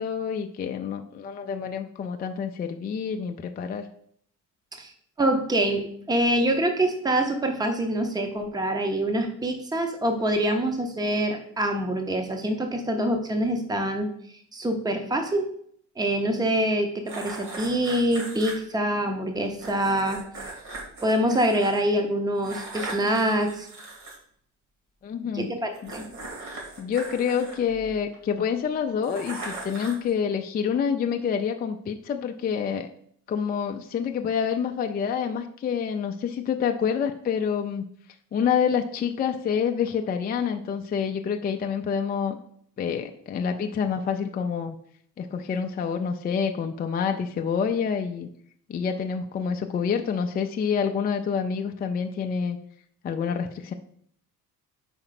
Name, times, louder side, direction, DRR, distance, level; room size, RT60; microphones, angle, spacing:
voice 1, 0.0-3.9 25.0-25.5 25.8-25.9 26.8-32.9 33.3-37.8 38.3-42.4 42.8-44.8 45.2-48.3 48.7-52.6 53.0-53.7, left 7 dB, 30° left, 4 dB, 0.4 m, -27 dB
voice 2, 5.2-14.1 14.5-15.5 16.0-20.2 21.0-23.7 25.3-26.1, right 1 dB, 10° right, 5 dB, 0.8 m, -25 dB
sound 1, 17.1-18.5 19.6-21.8 22.4-24.1 25.7-28.2 29.0-30.1, right 2 dB, 60° right, 2.5 m, -38 dB
5.0 x 4.4 x 5.8 m, 0.64 s
cardioid pair, 145°, 33 cm